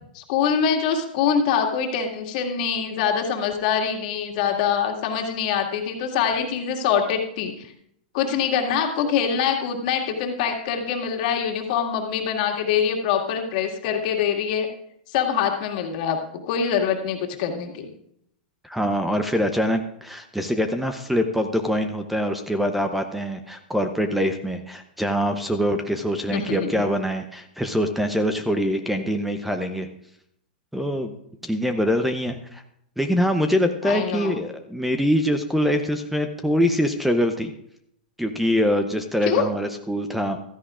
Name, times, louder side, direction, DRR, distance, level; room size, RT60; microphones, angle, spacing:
voice 1, 0.1-7.7 8.1-14.7 15.1-16.2 16.5-17.9 26.3-26.8 33.8-34.3 39.2-39.4, left 7 dB, 55° left, 2 dB, 2.0 m, -24 dB
voice 2, 18.6-29.9 30.7-31.1 31.4-32.6 33.0-37.5 38.2-40.4, equal, ahead, 8 dB, 0.7 m, -24 dB
15.5 x 13.5 x 2.5 m, 0.74 s
hypercardioid pair, 120°, 5 cm